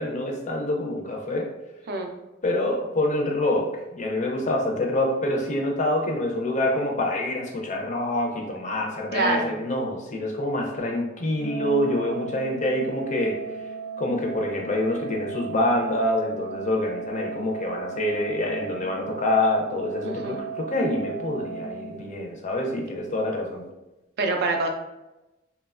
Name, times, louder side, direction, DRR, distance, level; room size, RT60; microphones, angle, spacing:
voice 1, 0.0-1.5 2.4-13.4 14.0-23.6, left 1 dB, 40° left, 1 dB, 0.4 m, -26 dB
voice 2, 9.1-9.5 20.0-20.4 24.2-24.7, right 3 dB, 50° right, 3 dB, 0.3 m, -25 dB
Organ, 11.4-22.4, right 4 dB, 80° left, 0.6 m, -36 dB
2.8 x 2.1 x 2.3 m, 0.99 s
head